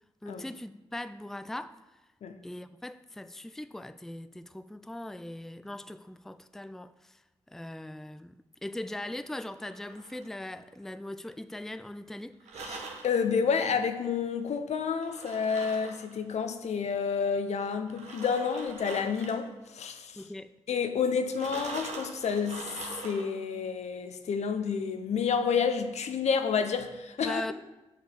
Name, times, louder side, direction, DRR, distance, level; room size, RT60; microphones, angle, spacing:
voice 1, 0.2-1.8 2.4-7.2 7.5-12.4 20.1-20.5 27.2-27.5, left 1 dB, 5° left, 0.4 m, -40 dB
sound 1, 9.4-10.8 12.4-13.2 15.0-16.2 17.9-19.5 21.3-23.4, right 3 dB, 85° right, 1.0 m, -43 dB
voice 2, 12.6-19.5 19.7-20.2 20.7-22.8 23.0-27.5, left 6 dB, 75° left, 0.7 m, -29 dB
6.6 x 4.8 x 6.6 m
supercardioid pair, 45°, 11 cm